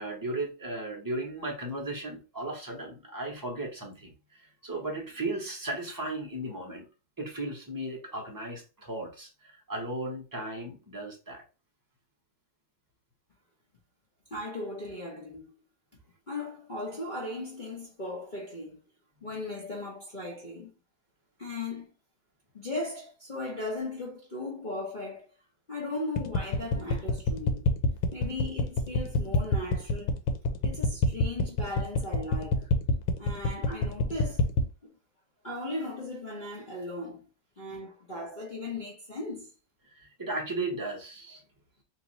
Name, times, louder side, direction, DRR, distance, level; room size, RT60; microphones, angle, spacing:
voice 1, 0.0-6.8 7.2-11.4 30.5-30.9 39.9-41.4, right 2 dB, 15° right, 0.8 m, -36 dB
voice 2, 14.3-15.5 16.3-18.8 19.2-20.7 21.4-21.9 22.5-25.3 25.7-27.7 28.1-30.2 30.6-32.7 33.2-34.5 34.8-34.9 35.4-37.3 37.6-39.5, left 2 dB, 35° left, 1.0 m, -37 dB
sound 1, 26.2-34.7, left 3 dB, 85° left, 1.4 m, -25 dB
3.0 x 2.9 x 4.0 m
omnidirectional pair, 1.9 m